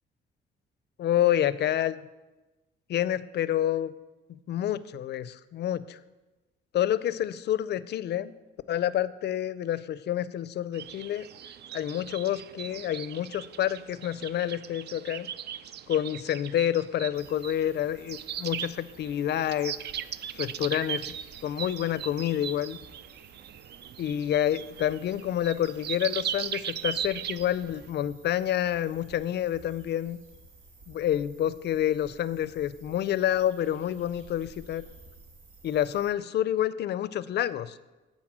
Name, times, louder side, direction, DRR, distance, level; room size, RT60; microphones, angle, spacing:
voice 1, 1.0-2.0 2.9-3.9 4.3-6.0 6.7-8.3 8.7-11.3 11.7-15.3 15.9-19.7 20.3-21.1 21.4-22.8 24.0-30.2 30.9-34.8 35.6-37.8, left 11 dB, 60° left, 16 dB, 0.4 m, -28 dB
sound 1, 10.7-27.9, right 9 dB, 55° right, 0.4 m, -39 dB
sound 2, 17.1-36.1, right 2 dB, 85° right, 1.6 m, -54 dB
8.9 x 4.2 x 7.4 m, 1.1 s
cardioid pair, 90°, 20 cm